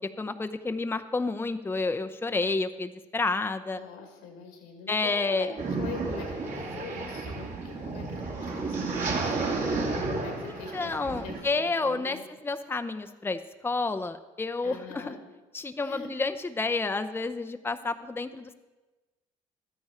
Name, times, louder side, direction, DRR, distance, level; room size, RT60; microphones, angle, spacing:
voice 1, 0.2-3.8 4.9-5.5 10.5-12.2 12.4-15.1 15.5-18.5, left 3 dB, 15° left, 9 dB, 0.6 m, -30 dB
voice 2, 3.7-12.2 14.6-15.3 15.8-16.1, left 4 dB, 85° left, 3 dB, 2.2 m, -43 dB
sound 1, 5.6-11.4, right 3 dB, 55° right, 2.4 m, -32 dB
12.5 x 9.7 x 4.4 m, 1.2 s
supercardioid pair, 65°, 16 cm